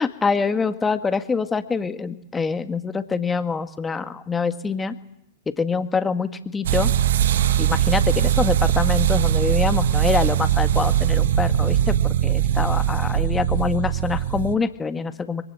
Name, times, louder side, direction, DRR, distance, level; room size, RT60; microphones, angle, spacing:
voice 1, 0.0-4.9 5.4-6.9 7.6-15.4, left 5 dB, 15° left, 9 dB, 1.8 m, -25 dB
sound 1, 6.6-14.5, right 11 dB, 70° right, 1.2 m, -20 dB
26.0 x 22.5 x 8.7 m, 0.80 s
hypercardioid pair, 115°, 0 cm